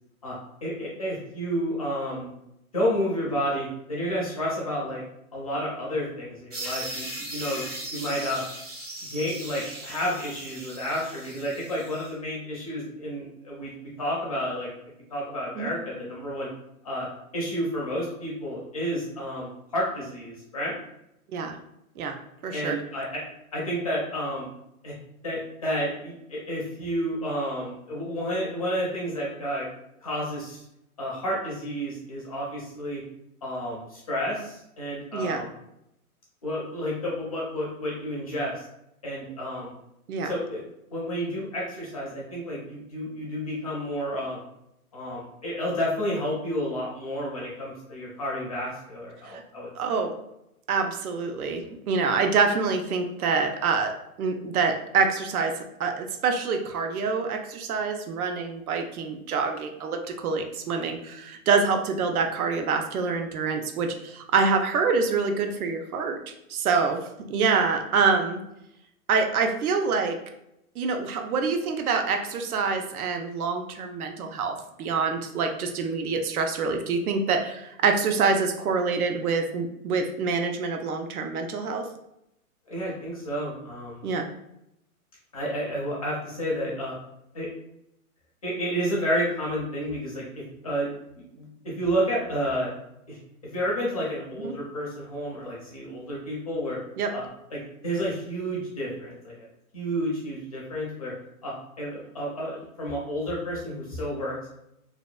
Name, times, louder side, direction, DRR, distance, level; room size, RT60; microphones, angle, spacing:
voice 1, 0.6-2.3 2.7-5.0 5.3-7.6 7.9-8.4 9.1-13.7 14.0-14.7 15.1-16.5 16.8-17.1 17.3-20.8 22.5-23.2 23.5-24.5 24.8-24.9 25.2-29.7 30.0-30.6 31.0-33.0 33.4-35.5 36.4-38.6 39.0-39.7 40.2-40.6 40.9-44.4 44.9-49.9 82.7-84.1 85.3-87.0 87.3-87.5 88.4-90.9 91.1-92.7 93.1-93.2 93.4-96.8 97.1-97.2 97.5-99.5 99.7-101.1 101.4-104.5, equal, 25° left, -5 dB, 0.4 m, -30 dB
sound 1, 6.5-12.1, right 1 dB, 25° right, 0.6 m, -38 dB
voice 2, 22.4-22.8 35.1-35.4 40.1-40.3 49.3-49.4 49.7-50.1 50.7-53.9 54.2-55.5 55.8-68.4 69.1-70.2 70.8-81.9 84.0-84.3 94.4-94.5 97.0-97.1, right 5 dB, 75° right, 5 dB, 0.6 m, -26 dB
2.8 x 2.1 x 2.3 m, 0.80 s
hypercardioid pair, 160°, 44 cm